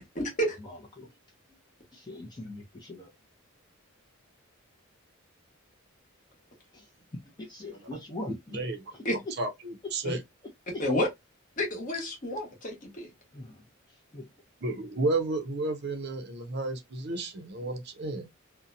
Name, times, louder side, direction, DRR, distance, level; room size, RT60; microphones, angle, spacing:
voice 1, 0.1-0.6 9.0-9.2 10.0-10.1 10.8-11.1 11.6-13.1, left 1 dB, 40° left, 0.9 m, -30 dB
voice 2, 1.9-3.1 6.7-6.8 7.5-8.6 13.3-13.5 14.1-14.2, left 1 dB, 20° left, 0.5 m, -41 dB
voice 3, 8.3-8.8 9.4-10.2 14.6-18.3, right 2 dB, 50° right, 0.6 m, -32 dB
2.7 x 2.1 x 2.4 m
head